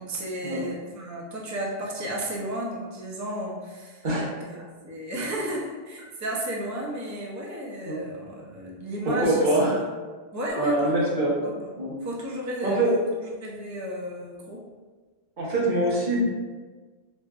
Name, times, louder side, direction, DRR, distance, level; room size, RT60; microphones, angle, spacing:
voice 1, 0.0-4.6 4.8-9.7 10.3-10.9 11.4-11.7 12.0-14.6, right 1 dB, 25° right, -3 dB, 0.4 m, -33 dB
voice 2, 4.0-4.6 7.9-8.0 9.0-9.8 10.6-11.3 11.8-11.9 12.6-12.9 15.4-16.2, right 1 dB, 55° right, -5 dB, 0.9 m, -24 dB
4.4 x 2.4 x 2.3 m, 1.4 s
omnidirectional pair, 1.1 m